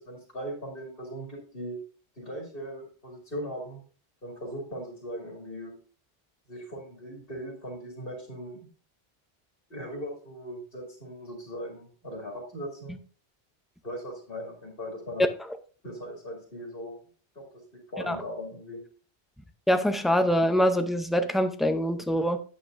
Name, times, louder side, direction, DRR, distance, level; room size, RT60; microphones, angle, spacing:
voice 1, 0.0-1.8 2.2-3.8 4.2-5.7 6.5-8.6 9.7-13.0 13.8-15.3 15.8-17.0 17.3-17.5 17.9-18.8, equal, 55° left, 2.6 m, -39 dB
voice 2, 19.7-22.4, equal, ahead, 0.3 m, -24 dB
9.8 x 8.6 x 2.6 m
omnidirectional pair, 1.1 m